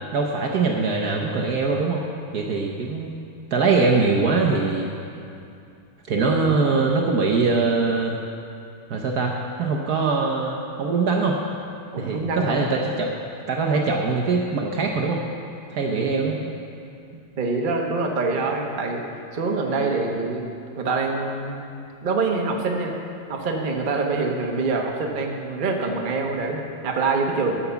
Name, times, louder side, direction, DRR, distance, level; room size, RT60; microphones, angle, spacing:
voice 1, 0.1-2.0 2.3-3.1 3.5-4.9 6.1-8.2 8.9-11.4 12.0-13.1 13.5-15.2 15.7-16.4, right 4 dB, 60° right, 0 dB, 1.1 m, -22 dB
voice 2, 6.2-6.7 11.9-12.7 15.9-16.5 17.4-19.0 19.3-20.5 20.8-21.6 22.0-22.9 23.3-27.6, right 3 dB, 40° right, 1 dB, 0.7 m, -25 dB
12.5 x 6.0 x 6.9 m, 2.5 s
omnidirectional pair, 2.4 m